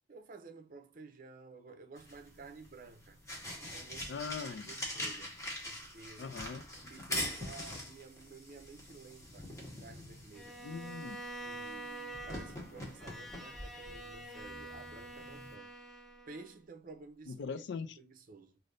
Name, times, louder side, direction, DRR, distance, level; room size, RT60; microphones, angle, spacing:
voice 1, 0.1-3.2 3.7-5.4 5.6-6.3 6.8-9.5 9.8-10.6 11.4-15.7 16.3-17.6 18.0-18.6, right 4 dB, 50° right, 0.6 m, -53 dB
sound 1, 2.0-15.5, left 1 dB, 20° left, 1.2 m, -44 dB
voice 2, 4.1-4.7 6.2-6.7 10.6-11.2 17.3-18.0, left 5 dB, 65° left, 0.4 m, -41 dB
Bowed string instrument, 10.3-16.6, right 1 dB, ahead, 0.5 m, -47 dB
3.3 x 2.6 x 2.5 m
head